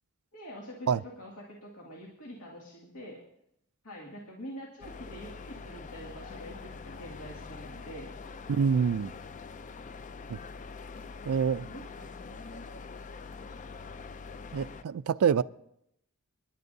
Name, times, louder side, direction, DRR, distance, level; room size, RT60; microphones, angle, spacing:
voice 1, 0.3-3.2 3.8-8.1 11.0-12.7 14.9-15.1, equal, 85° left, 2.3 m, -46 dB
sound 1, 4.8-14.8, left 4 dB, 35° left, 0.4 m, -44 dB
voice 2, 8.5-9.1 10.3-10.4 11.3-11.7 14.5-15.4, right 6 dB, 80° right, 0.4 m, -26 dB
27.5 x 11.0 x 2.7 m
head